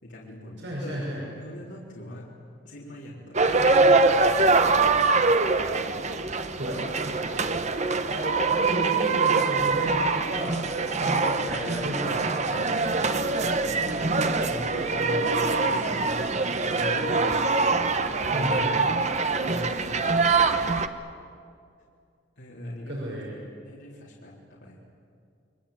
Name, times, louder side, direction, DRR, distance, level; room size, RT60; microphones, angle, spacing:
voice 1, 0.0-1.1 1.4-2.3 2.6-4.4 12.7-14.0 14.4-16.3 16.6-17.4 18.2-18.9 19.5-20.1 22.4-23.0 23.6-24.8, left 1 dB, 75° left, -5 dB, 3.7 m, -40 dB
voice 2, 0.6-1.3 6.6-6.9 8.1-10.6 10.9-12.7 18.3-18.9 22.9-23.4, right 1 dB, 75° right, -3 dB, 6.1 m, -33 dB
sound 1, 3.3-20.9, right 3 dB, 40° right, 1.2 m, -24 dB
29.5 x 22.5 x 8.6 m, 2.3 s
head